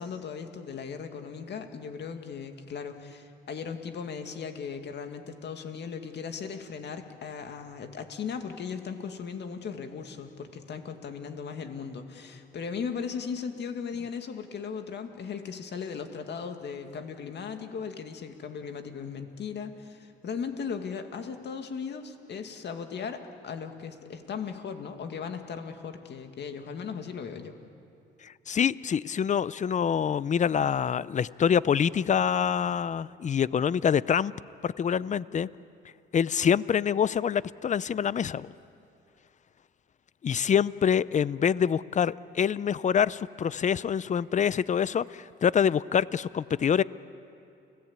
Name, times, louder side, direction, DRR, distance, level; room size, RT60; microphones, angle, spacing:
voice 1, 0.0-27.6, left 6 dB, 60° left, 6 dB, 2.2 m, -37 dB
voice 2, 28.2-34.3 34.6-35.5 36.1-38.5 40.2-46.8, left 8 dB, 40° left, 19 dB, 0.6 m, -26 dB
29.5 x 17.5 x 8.9 m, 2.6 s
cardioid pair, 90°, 20 cm